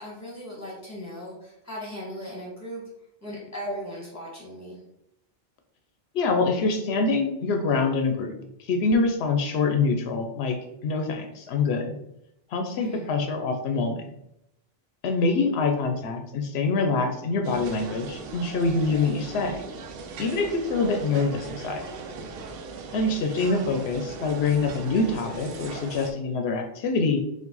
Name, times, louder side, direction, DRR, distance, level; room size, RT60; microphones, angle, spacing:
voice 1, 0.0-2.8 3.2-4.8 12.8-13.1 18.9-19.1, equal, 15° left, -4 dB, 1.6 m, -37 dB
voice 2, 6.1-8.4 8.7-10.6 10.8-11.9 12.5-14.0 15.0-19.6 20.2-21.8 22.9-27.2, left 3 dB, 85° left, 5 dB, 0.8 m, -25 dB
sound 1, 17.4-26.1, right 4 dB, 70° right, 0.7 m, -38 dB
4.6 x 2.5 x 3.9 m, 0.81 s
omnidirectional pair, 1.0 m